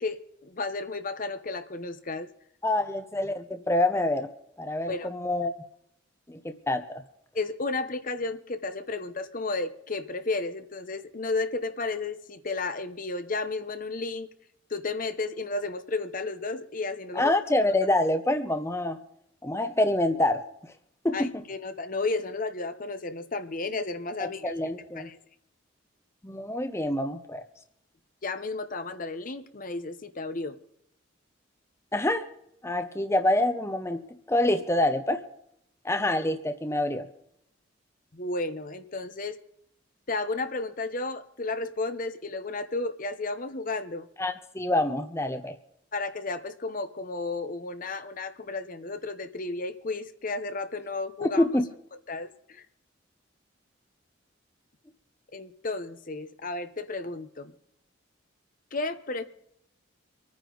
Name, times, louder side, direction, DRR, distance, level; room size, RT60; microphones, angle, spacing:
voice 1, 0.0-2.3 4.9-5.1 7.3-14.3 14.7-17.3 21.1-24.7 25.0-25.2 28.2-30.6 38.1-39.4 40.1-44.1 45.9-51.4 52.1-52.7 55.3-57.5 58.7-59.2, left 3 dB, 45° left, 10 dB, 0.9 m, -33 dB
voice 2, 2.6-4.3 4.6-5.5 6.3-7.0 17.2-19.0 19.4-20.4 21.0-21.4 24.2-25.1 26.2-27.5 31.9-32.2 32.6-34.0 34.3-35.2 35.8-37.1 44.2-45.5 51.2-51.6, left 1 dB, 15° left, 8 dB, 0.8 m, -26 dB
25.5 x 9.7 x 3.9 m, 0.73 s
head